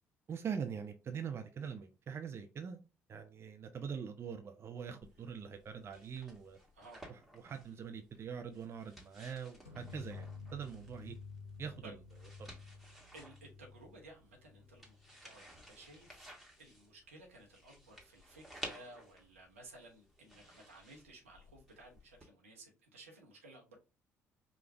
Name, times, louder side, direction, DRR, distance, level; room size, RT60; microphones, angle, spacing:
voice 1, 0.3-2.8 3.1-6.6 7.1-11.1 11.6-12.0 12.4-12.5, right 7 dB, 35° right, 0.6 m, -43 dB
sound 1, 5.0-22.3, equal, ahead, 1.5 m, -55 dB
sound 2, 9.7-15.2, left 4 dB, 80° left, 0.8 m, -52 dB
voice 2, 13.1-14.9 15.2-16.3 16.6-23.8, right 2 dB, 80° right, 1.0 m, -56 dB
5.0 x 2.4 x 3.3 m
figure-of-eight pair, 50°, 7 cm